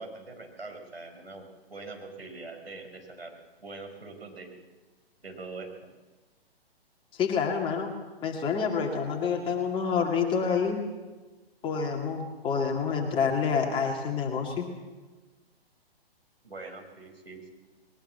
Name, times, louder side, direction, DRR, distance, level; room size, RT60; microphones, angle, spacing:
voice 1, 0.0-4.5 5.2-5.9 16.4-17.5, right 3 dB, 75° right, 3 dB, 5.1 m, -43 dB
voice 2, 7.1-7.9 8.2-10.8 11.6-14.7, left 6 dB, 15° left, 2 dB, 2.4 m, -28 dB
21.0 x 20.0 x 7.4 m, 1.3 s
figure-of-eight pair, 125°, 31 cm